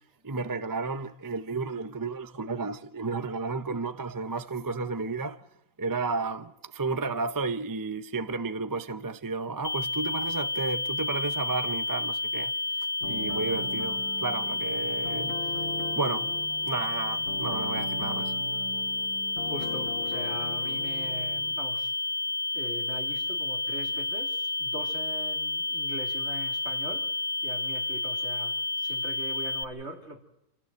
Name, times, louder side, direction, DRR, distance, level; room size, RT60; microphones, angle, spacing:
voice 1, 0.2-5.4 5.8-12.5 13.0-15.4 16.0-16.3 16.6-18.3, right 3 dB, 25° right, 0.4 m, -32 dB
sound 1, 9.6-29.6, left 2 dB, 40° left, 1.4 m, -31 dB
sound 2, 13.0-21.5, left 1 dB, 75° left, 2.5 m, -40 dB
voice 2, 19.4-22.0 22.5-30.2, right 1 dB, 45° right, 3.4 m, -41 dB
28.5 x 15.0 x 7.9 m
omnidirectional pair, 1.6 m